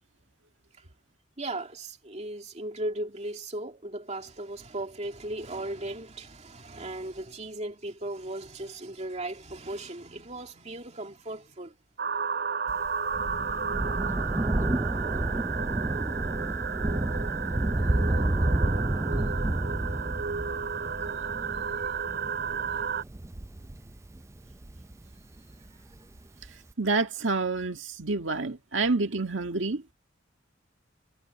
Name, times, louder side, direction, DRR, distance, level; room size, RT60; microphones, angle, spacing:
voice 1, 1.4-11.8 21.8-21.9, right 1 dB, 35° right, 2.5 m, -37 dB
sound 1, 12.0-23.0, right 6 dB, 60° right, 2.9 m, -32 dB
Thunder, 12.7-25.6 26.4-26.5, right 1 dB, 15° right, 0.5 m, -30 dB
voice 2, 26.8-29.8, right 3 dB, 85° right, 1.8 m, -28 dB
head